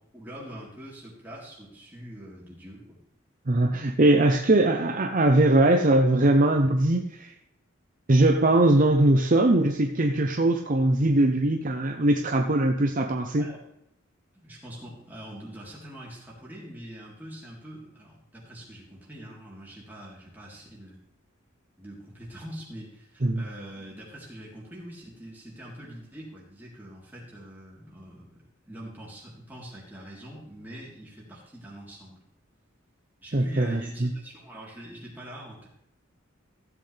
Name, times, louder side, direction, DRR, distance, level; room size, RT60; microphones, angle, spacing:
voice 1, 0.1-3.0 13.4-13.6 14.3-21.0 21.8-28.4 28.7-32.2 33.2-35.7, equal, 10° right, -5 dB, 3.6 m, -43 dB
voice 2, 3.5-7.3 8.1-13.5 23.2-23.4 33.3-34.1, right 1 dB, 40° right, 4 dB, 0.7 m, -21 dB
15.5 x 7.9 x 3.4 m, 0.82 s
head